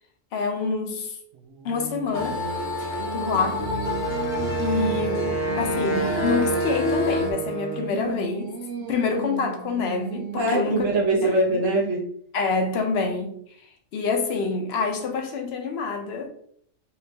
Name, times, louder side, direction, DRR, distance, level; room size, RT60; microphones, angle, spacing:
voice 1, 0.3-1.2 1.6-2.4 2.8-3.6 4.6-8.4 8.9-10.9 11.2-11.4 12.3-13.3 13.9-16.3, left 4 dB, 60° left, 4 dB, 0.9 m, -27 dB
Singing, 1.3-6.8 7.4-11.3, right 7 dB, 85° right, 1.0 m, -36 dB
sound 1, 2.1-7.3, left 3 dB, 75° left, 1.3 m, -29 dB
Wind instrument woodwind instrument, 3.8-8.1, right 3 dB, 20° left, 0.5 m, -28 dB
voice 2, 10.3-12.1, right 1 dB, 70° right, -4 dB, 1.4 m, -23 dB
4.5 x 3.3 x 2.8 m, 0.64 s
omnidirectional pair, 1.3 m